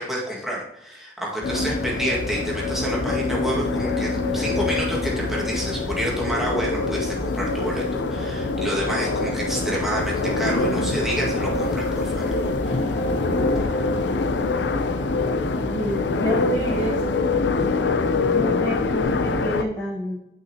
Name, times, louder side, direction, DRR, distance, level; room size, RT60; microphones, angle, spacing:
voice 1, 0.0-12.9, equal, ahead, -5 dB, 1.8 m, -29 dB
sound 1, 1.4-19.6, left 3 dB, 80° left, 0.5 m, -24 dB
sound 2, 12.6-18.6, left 2 dB, 50° left, 1.4 m, -41 dB
voice 2, 15.5-17.0 18.3-20.2, left 1 dB, 20° left, -3 dB, 1.0 m, -29 dB
9.3 x 5.6 x 2.9 m, 0.87 s
head